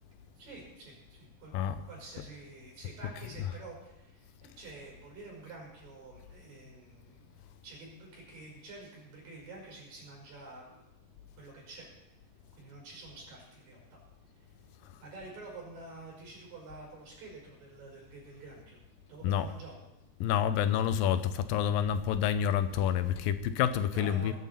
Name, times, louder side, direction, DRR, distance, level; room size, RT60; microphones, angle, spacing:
voice 1, 0.4-1.5 1.9-7.3 7.6-10.8 11.4-11.9 12.5-14.0 14.4-14.5 15.0-18.8 19.1-19.7 23.9-24.3, right 2 dB, 75° right, -2 dB, 7.1 m, -48 dB
voice 2, 20.2-24.3, left 9 dB, 85° left, 11 dB, 2.5 m, -28 dB
21.0 x 11.0 x 4.4 m, 0.91 s
omnidirectional pair, 4.0 m